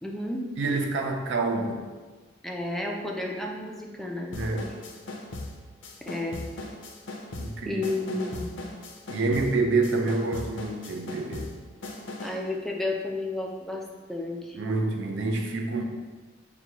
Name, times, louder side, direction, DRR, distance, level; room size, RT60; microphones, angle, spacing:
voice 1, 0.0-0.4 2.4-4.3 6.1-6.4 7.6-8.6 12.2-13.8 14.1-14.6, left 2 dB, ahead, -1 dB, 0.4 m, -32 dB
voice 2, 0.6-1.8 4.3-4.7 7.4-7.8 9.1-11.5 14.6-15.8, right 3 dB, 65° right, 3 dB, 0.5 m, -27 dB
sound 1, 4.3-12.5, left 2 dB, 65° left, 0.6 m, -39 dB
6.0 x 2.2 x 2.9 m, 1.4 s
head